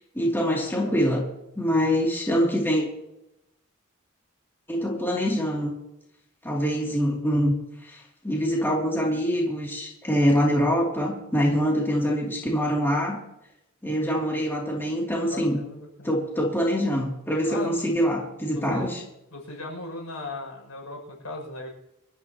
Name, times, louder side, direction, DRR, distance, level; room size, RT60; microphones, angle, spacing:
voice 1, 0.1-1.2 1.6-2.8 4.7-5.8 6.4-7.5 7.8-13.2 13.8-15.6 16.0-19.0, equal, 10° left, -2 dB, 2.8 m, -24 dB
voice 2, 15.2-16.3 17.5-17.7 18.5-18.9 19.3-21.7, left 2 dB, 85° left, 0 dB, 6.7 m, -37 dB
25.0 x 13.0 x 3.0 m, 0.87 s
head